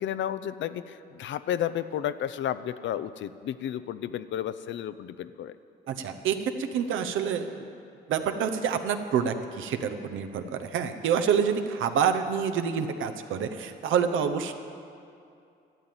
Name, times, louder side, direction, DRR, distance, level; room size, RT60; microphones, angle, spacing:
voice 1, 0.0-5.5, left 10 dB, 70° left, 14 dB, 0.6 m, -32 dB
voice 2, 5.9-7.6 8.1-14.5, right 7 dB, 80° right, 7 dB, 0.9 m, -27 dB
12.5 x 7.8 x 8.9 m, 2.5 s
cardioid pair, 90°, 20 cm